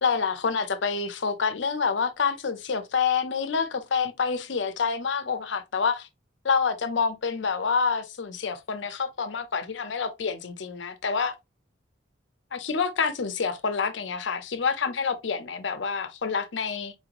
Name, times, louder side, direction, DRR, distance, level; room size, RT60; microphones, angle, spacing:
voice 1, 0.0-6.1 6.4-11.4 12.5-16.9, left 5 dB, 75° left, 0.6 m, -27 dB
4.4 x 2.9 x 2.5 m
head